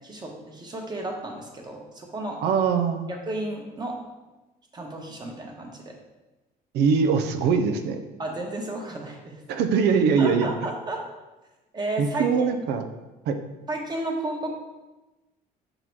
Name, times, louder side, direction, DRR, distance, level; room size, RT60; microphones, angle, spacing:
voice 1, 0.0-2.4 3.1-4.0 4.7-5.9 8.2-9.4 10.2-11.0 11.7-12.5 13.7-14.6, right 2 dB, 25° right, 1 dB, 1.2 m, -33 dB
voice 2, 2.4-3.1 6.7-8.0 9.5-10.5 12.0-12.9 13.3-13.4, right 6 dB, 80° right, 6 dB, 0.6 m, -22 dB
5.9 x 3.9 x 4.6 m, 1.1 s
cardioid pair, 120°, 17 cm